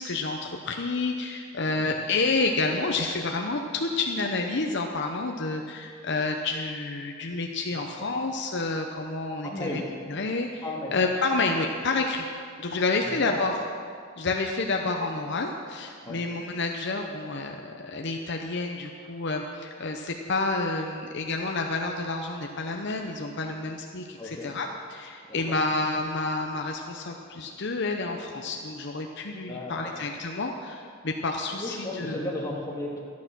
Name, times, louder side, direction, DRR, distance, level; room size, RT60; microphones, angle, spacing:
voice 1, 0.0-9.8 10.1-10.6 10.9-12.3 12.6-13.5 14.2-32.2, left 3 dB, 55° left, 2 dB, 0.8 m, -29 dB
voice 2, 9.4-9.9 10.6-10.9 13.2-13.4 16.0-16.2 24.2-24.5 25.3-25.6 29.5-30.0 31.6-33.0, left 1 dB, 15° left, -4 dB, 2.0 m, -34 dB
13.0 x 9.5 x 6.2 m, 2.2 s
head